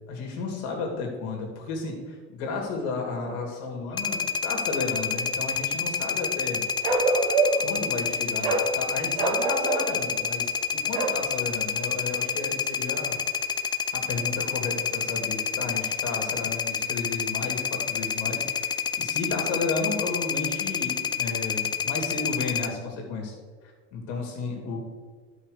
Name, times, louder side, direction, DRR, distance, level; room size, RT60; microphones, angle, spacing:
voice 1, 0.1-6.6 7.6-13.2 13.9-23.4 23.9-24.8, left 3 dB, 60° left, 1 dB, 2.7 m, -33 dB
sound 1, 3.9-22.7, left 6 dB, 15° left, 0.3 m, -28 dB
Bark, 6.8-7.7 8.4-8.7 9.1-9.9 10.9-11.2, right 3 dB, 65° right, 1.7 m, -24 dB
12.0 x 5.5 x 5.0 m, 1.5 s
supercardioid pair, 125°, 33 cm